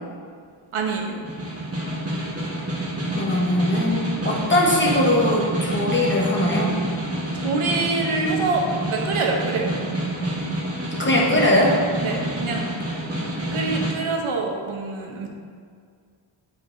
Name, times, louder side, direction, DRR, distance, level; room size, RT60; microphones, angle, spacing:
voice 1, 0.7-1.2 7.3-9.8 12.0-12.7 13.5-15.3, right 3 dB, 85° right, 0 dB, 1.0 m, -25 dB
Snare drum, 1.2-14.0, right 1 dB, 30° right, 1.3 m, -28 dB
voice 2, 3.1-6.8 11.0-11.7, left 1 dB, 25° left, -3 dB, 1.2 m, -21 dB
8.4 x 4.6 x 2.6 m, 2.1 s
wide cardioid pair, 90°, 49 cm